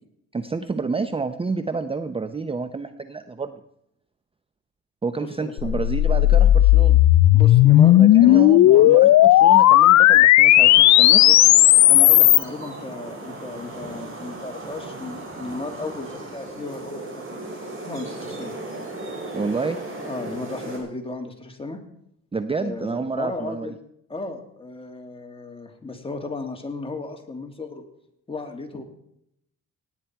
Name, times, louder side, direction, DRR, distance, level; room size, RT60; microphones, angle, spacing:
voice 1, 0.3-3.6 5.0-7.0 8.0-11.3 19.3-19.8 22.3-23.7, right 4 dB, 20° right, 11 dB, 0.7 m, -29 dB
voice 2, 5.2-5.8 7.3-9.0 11.2-11.4 11.9-17.4 17.8-18.5 20.0-21.8 22.6-23.7 24.1-27.8 28.3-28.8, left 3 dB, 20° left, 3 dB, 2.6 m, -35 dB
sound 1, 5.6-12.4, left 14 dB, 65° left, 0.5 m, -13 dB
sound 2, 10.5-20.8, right 2 dB, 45° right, 6.0 m, -36 dB
18.0 x 9.3 x 4.6 m, 0.76 s
cardioid pair, 90°, 30 cm